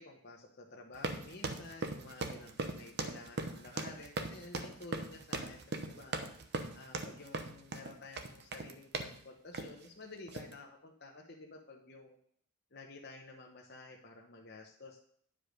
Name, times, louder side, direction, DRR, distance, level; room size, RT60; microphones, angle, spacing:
voice 1, 0.0-6.4 6.7-12.2 12.7-15.0, left 2 dB, 50° left, 0 dB, 1.0 m, -51 dB
sound 1, 0.9-9.2 9.5-9.9 10.3-10.5, right 3 dB, 50° right, 0.8 m, -39 dB
9.9 x 5.1 x 5.2 m, 0.65 s
head